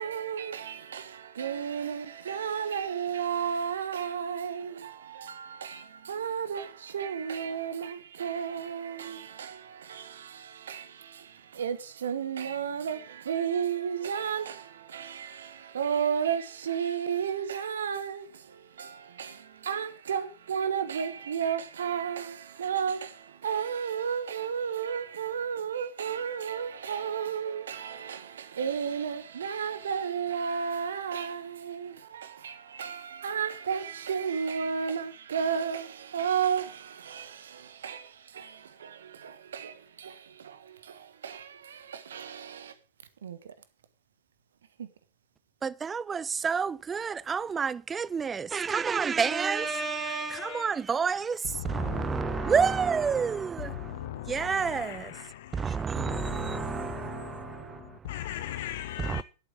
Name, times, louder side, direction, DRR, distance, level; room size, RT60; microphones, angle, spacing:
voice 1, 0.0-42.7 43.2-43.5 44.8-44.9, right 7 dB, 65° right, 1.3 m, -33 dB
voice 2, 45.6-55.1 55.5-58.1 59.0-59.2, right 6 dB, 20° right, 0.5 m, -29 dB
voice 3, 49.2-50.8 51.5-52.8 53.1-59.2, left 13 dB, 55° left, 0.6 m, -39 dB
11.5 x 8.6 x 7.1 m
figure-of-eight pair, 90°, 0 cm